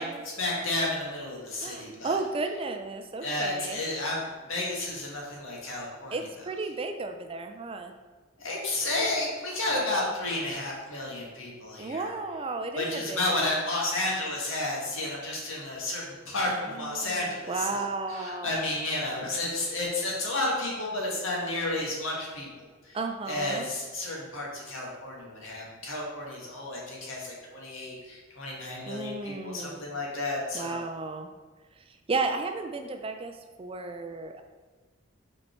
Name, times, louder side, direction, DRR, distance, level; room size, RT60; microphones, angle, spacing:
voice 1, 0.4-2.2 3.2-6.1 8.4-12.1 12.7-23.0 23.3-30.8, left 2 dB, 75° left, -3 dB, 1.8 m, -32 dB
voice 2, 1.6-3.8 6.1-7.9 11.8-13.5 16.5-18.7 22.9-23.7 28.9-29.9 30.5-31.3 31.9-34.4, right 3 dB, 25° right, 6 dB, 0.4 m, -34 dB
5.5 x 4.1 x 4.4 m, 1.4 s
head